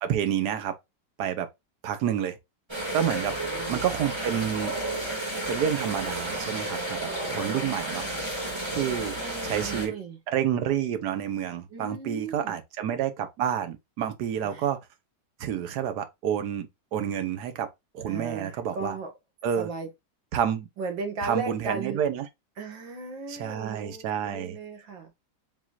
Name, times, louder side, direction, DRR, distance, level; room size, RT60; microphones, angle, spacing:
voice 1, 0.0-0.7 1.2-1.5 1.8-2.3 2.9-3.4 3.7-4.8 5.5-8.1 8.7-9.2 9.4-10.0 10.3-14.8 15.4-17.7 17.9-19.0 19.4-19.7 20.3-20.7 21.2-22.3 23.3-24.6, right 9 dB, 65° right, 1.3 m, -29 dB
sound 1, 2.7-9.9, right 1 dB, 15° right, 1.9 m, -32 dB
voice 2, 3.2-4.1 7.4-8.2 9.0-10.2 11.7-12.6 14.4-14.7 18.1-19.1 19.6-19.9 20.8-22.0 22.6-25.1, right 4 dB, 85° right, 2.2 m, -37 dB
4.9 x 3.7 x 2.4 m
omnidirectional pair, 2.0 m